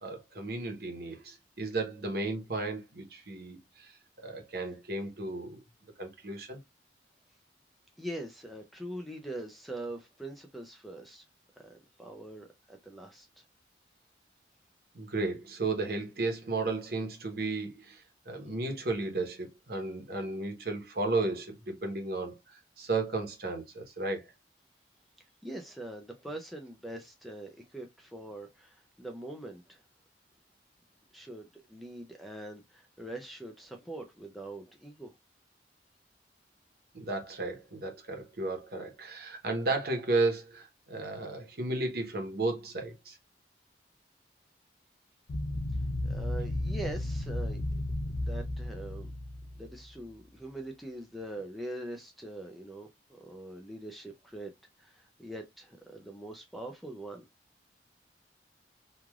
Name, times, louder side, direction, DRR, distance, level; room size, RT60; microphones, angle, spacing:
voice 1, 0.0-3.9 4.2-5.6 6.0-6.6 14.9-22.4 22.8-24.3 36.9-43.2, right 3 dB, 60° right, 0.9 m, -34 dB
voice 2, 8.0-11.3 11.6-13.4 25.4-29.8 31.1-35.1 46.0-47.6 48.2-49.1 49.6-54.5 54.8-57.3, right 1 dB, ahead, 0.4 m, -43 dB
sound 1, 45.3-50.0, left 1 dB, 70° left, 0.6 m, -34 dB
3.1 x 2.4 x 2.3 m
head